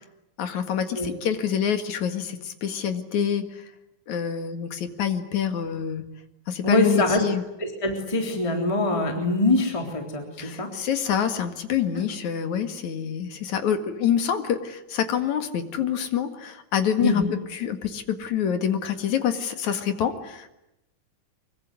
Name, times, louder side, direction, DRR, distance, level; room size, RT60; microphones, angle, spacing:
voice 1, 0.4-3.5 4.1-6.0 6.5-7.4 10.4-17.2 17.5-20.5, left 8 dB, 60° left, 8 dB, 3.1 m, -26 dB
voice 2, 6.6-7.2 7.6-10.7 17.0-17.2, left 2 dB, 10° left, 3 dB, 3.1 m, -24 dB
24.5 x 23.5 x 9.7 m, 0.88 s
omnidirectional pair, 4.0 m